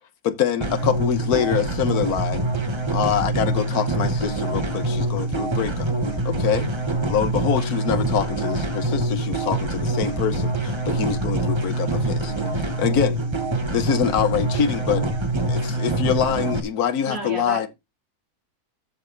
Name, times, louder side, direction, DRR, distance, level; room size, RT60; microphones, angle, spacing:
voice 1, 0.2-2.4 2.9-5.9 6.2-6.7 7.1-13.2 13.7-15.1 15.5-17.7, left 8 dB, 75° left, 1.5 m, -25 dB
sound 1, 0.6-16.6, right 2 dB, 20° right, 1.0 m, -25 dB
voice 2, 17.1-17.7, right 2 dB, 60° right, 3.3 m, -31 dB
13.5 x 5.1 x 3.9 m
omnidirectional pair, 1.6 m